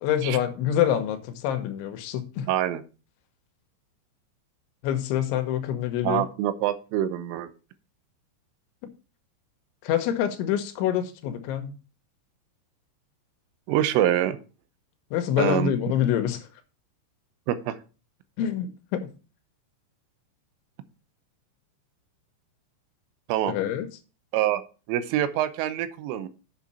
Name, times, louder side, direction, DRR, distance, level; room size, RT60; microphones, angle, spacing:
voice 1, 0.0-2.5 4.8-6.2 9.8-11.7 15.1-16.4 18.4-19.1 23.5-23.9, left 10 dB, 80° left, 3.2 m, -26 dB
voice 2, 2.5-2.8 6.0-7.5 13.7-14.4 15.4-15.7 17.5-17.8 23.3-23.6 24.3-24.6 24.9-26.3, right 12 dB, 90° right, 3.3 m, -25 dB
8.3 x 7.4 x 4.2 m
omnidirectional pair, 5.6 m